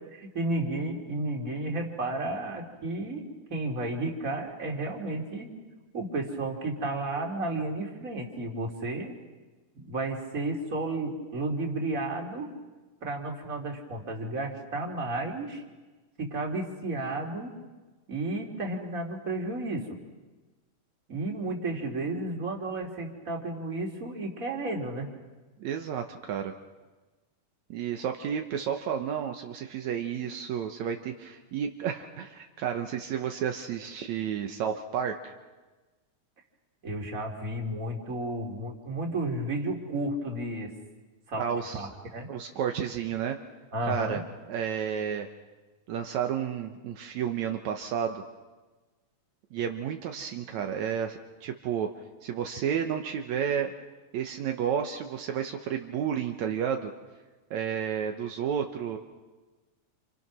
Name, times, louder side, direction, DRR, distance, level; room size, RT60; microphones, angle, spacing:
voice 1, 0.2-3.2 3.5-5.5 5.9-9.2 9.7-12.5 13.0-15.6 16.2-17.5 18.1-19.8 21.1-25.1 36.8-40.7 41.3-41.5 41.7-42.3 43.7-44.2, right 2 dB, 25° right, 1 dB, 3.0 m, -32 dB
voice 2, 25.6-26.5 27.7-35.3 41.4-41.9 42.3-43.4 43.9-44.2 44.5-45.3 45.9-48.2 49.5-51.9 52.2-53.7 54.1-56.9 57.5-59.0, right 8 dB, 70° right, 4 dB, 2.3 m, -31 dB
28.5 x 28.5 x 6.2 m, 1.2 s
omnidirectional pair, 3.4 m